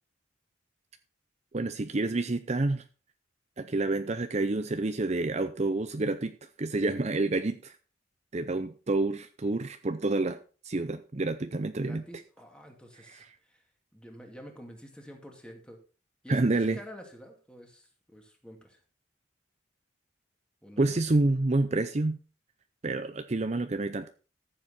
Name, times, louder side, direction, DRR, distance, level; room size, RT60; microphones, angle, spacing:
voice 1, 1.5-2.8 3.6-6.3 6.6-7.8 8.3-10.4 10.6-12.0 13.1-13.2 16.3-16.8 20.8-22.2 22.8-24.1, right 2 dB, 35° right, 9 dB, 0.6 m, -28 dB
voice 2, 11.8-13.6 13.9-15.8 16.2-18.8 20.6-21.0, equal, 5° left, 2 dB, 2.3 m, -49 dB
14.0 x 7.4 x 4.3 m, 0.36 s
head